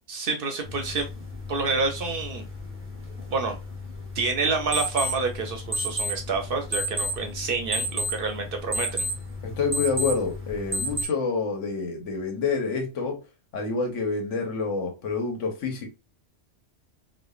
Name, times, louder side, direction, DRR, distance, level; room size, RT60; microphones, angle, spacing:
voice 1, 0.1-1.1 1.5-2.4 3.3-3.6 4.1-9.1, right 4 dB, 60° right, 0.7 m, -28 dB
sound 1, 0.6-11.1, equal, 20° right, 0.3 m, -32 dB
voice 2, 9.4-13.2 13.5-15.9, left 4 dB, 85° left, 1.2 m, -28 dB
3.1 x 2.1 x 2.3 m
omnidirectional pair, 1.2 m